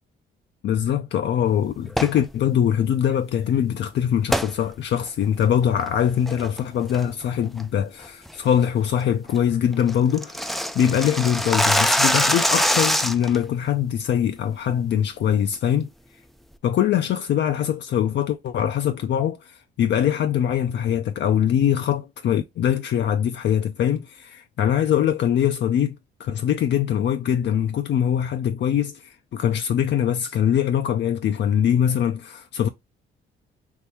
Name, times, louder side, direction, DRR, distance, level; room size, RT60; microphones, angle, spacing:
voice 1, 0.6-15.9 16.6-32.7, left 9 dB, 65° left, 0.5 m, -22 dB
sound 1, 1.9-2.2 4.3-4.5 5.0-5.1 5.6-5.9 6.3-6.6 6.9-7.2 7.6-7.7 8.1-8.3 8.7-8.8 9.1-9.2 9.4-9.5 9.7-13.4, equal, ahead, 0.4 m, -22 dB
3.7 x 2.7 x 4.4 m
cardioid pair, 90°, 20 cm